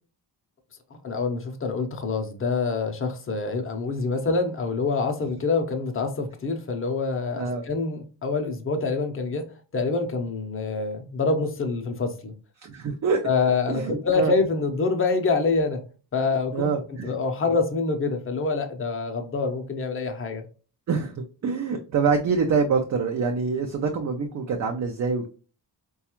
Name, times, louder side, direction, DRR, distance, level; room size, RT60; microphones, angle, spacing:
voice 1, 1.0-9.4 9.7-12.3 13.2-15.8 16.1-16.7 17.0-20.4, left 4 dB, 30° left, 0.6 m, -26 dB
voice 2, 12.6-13.2 13.7-14.3 16.5-17.1 20.9-25.3, right 5 dB, 45° right, 0.4 m, -25 dB
4.1 x 2.3 x 2.9 m
wide cardioid pair, 155°, 43 cm